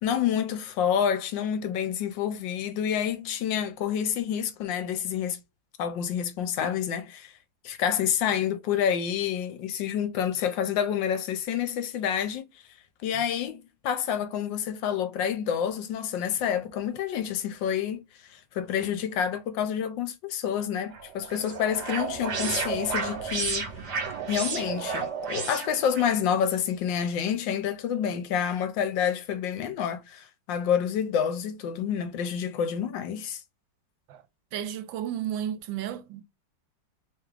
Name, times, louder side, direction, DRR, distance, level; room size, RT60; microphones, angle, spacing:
voice 1, 0.0-5.4 5.8-7.3 7.6-12.5 13.0-23.7 24.3-33.4, left 8 dB, 75° left, 1.4 m, -28 dB
sound 1, 20.9-26.1, right 5 dB, 65° right, 1.5 m, -32 dB
voice 2, 34.5-36.2, right 10 dB, 80° right, 1.4 m, -33 dB
3.5 x 3.4 x 3.3 m
omnidirectional pair, 2.1 m